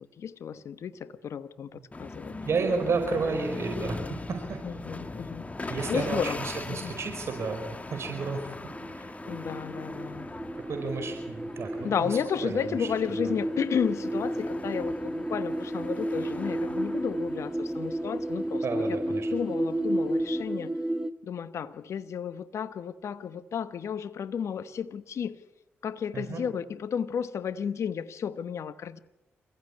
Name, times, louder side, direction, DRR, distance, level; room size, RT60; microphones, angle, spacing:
voice 1, 0.0-2.3 4.6-6.9 9.2-10.3 11.8-19.0 19.3-20.7 21.2-25.4 25.8-29.0, left 7 dB, 65° left, 1.2 m, -33 dB
sound 1, 1.9-20.5, left 2 dB, 25° left, 2.4 m, -41 dB
voice 2, 2.3-4.6 5.7-8.5 8.9-9.1 10.7-12.1 12.4-12.9 13.1-13.3 18.6-19.3 26.1-26.4, right 4 dB, 60° right, 5.0 m, -32 dB
sound 2, 8.7-21.1, right 1 dB, 15° right, 1.5 m, -32 dB
27.5 x 15.5 x 9.9 m
hypercardioid pair, 45°, 5 cm